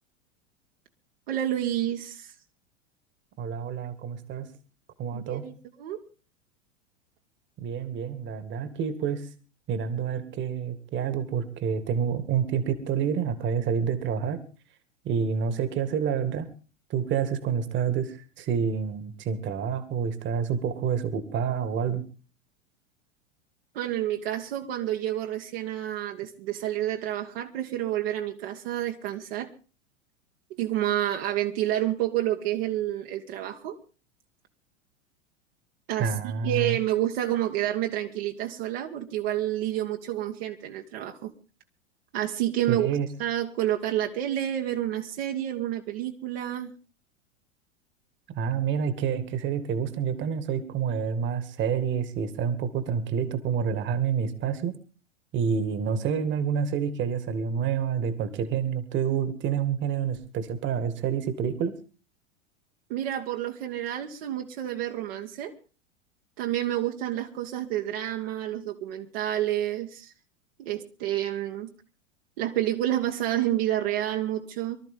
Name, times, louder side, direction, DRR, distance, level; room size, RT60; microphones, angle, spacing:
voice 1, 1.3-2.3 5.1-5.5 5.8-6.0 23.7-29.5 30.6-33.8 35.9-41.3 42.1-42.9 43.2-46.7 62.9-65.5 66.4-70.1 70.6-71.7 72.4-74.8, right 12 dB, 50° right, 2 dB, 1.8 m, -29 dB
voice 2, 3.4-4.5 5.0-5.5 7.6-9.3 9.7-14.4 15.1-16.5 16.9-22.0 36.0-36.8 42.7-43.1 48.3-54.7 55.3-61.7, right 7 dB, 30° right, 13 dB, 2.0 m, -28 dB
24.0 x 13.0 x 3.7 m, 0.36 s
figure-of-eight pair, 90°, 38 cm